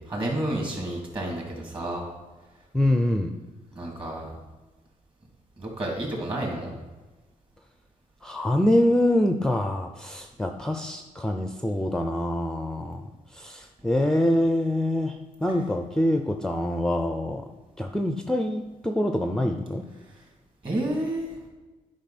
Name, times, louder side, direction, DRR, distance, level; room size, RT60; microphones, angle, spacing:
voice 1, 0.1-2.0 3.7-4.3 5.6-6.7 20.6-21.2, right 1 dB, 35° right, -1 dB, 2.6 m, -30 dB
voice 2, 2.7-3.3 8.2-13.1 13.3-15.2 15.4-17.4 17.8-19.8, left 1 dB, 5° left, 5 dB, 0.5 m, -25 dB
10.0 x 5.4 x 4.2 m, 1.2 s
cardioid pair, 115°, 15 cm